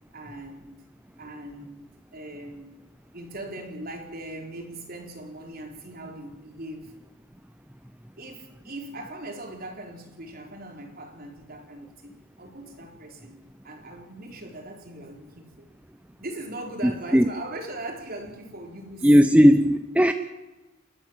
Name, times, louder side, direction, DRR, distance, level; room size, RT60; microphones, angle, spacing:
voice 1, 0.1-0.8 1.2-2.8 3.1-6.9 8.2-15.7 16.2-19.4, right 1 dB, 50° right, 2 dB, 4.1 m, -40 dB
voice 2, 16.8-17.3 19.0-20.1, equal, 5° right, 8 dB, 0.7 m, -17 dB
29.5 x 13.0 x 7.5 m, 1.2 s
head